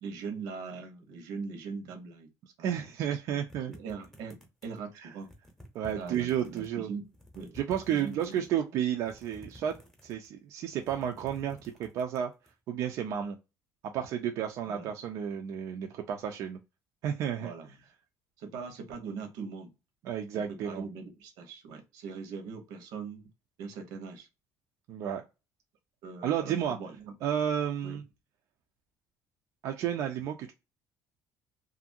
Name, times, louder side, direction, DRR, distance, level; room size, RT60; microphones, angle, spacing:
voice 1, 0.0-2.3 2.6-2.7 3.1-3.2 3.7-5.3 6.0-7.1 7.3-7.5 7.9-8.4 8.8-8.9 14.7-14.9 17.4-17.7 18.4-19.7 20.5-23.3 23.6-24.3 26.0-27.1 27.8-28.0, right 5 dB, 90° right, 1.0 m, -41 dB
voice 2, 2.6-3.8 5.0-5.1 5.7-6.9 7.5-9.8 10.0-12.3 12.7-13.4 13.9-16.6 17.0-17.5 20.0-20.9 24.9-25.2 26.2-26.8 27.2-28.0 29.6-30.5, right 9 dB, 60° right, 0.4 m, -32 dB
sound 1, 3.5-4.8 5.2-6.7 7.1-8.5 9.0-10.4 10.7-12.5, equal, 5° left, 0.8 m, -52 dB
2.7 x 2.5 x 2.6 m
cardioid pair, 160°, 6 cm